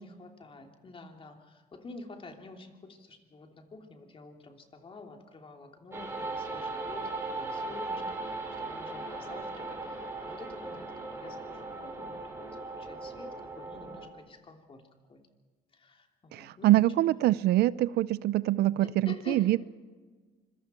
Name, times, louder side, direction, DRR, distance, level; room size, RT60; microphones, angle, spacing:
voice 1, 0.0-15.3 15.7-16.8 18.8-19.5, left 3 dB, 30° left, 3 dB, 3.2 m, -48 dB
sound 1, 5.9-14.1, right 3 dB, 15° right, 4.7 m, -38 dB
voice 2, 16.3-19.6, right 15 dB, 75° right, 19 dB, 0.6 m, -25 dB
25.5 x 23.0 x 4.6 m, 1.4 s
cardioid pair, 110°, 17 cm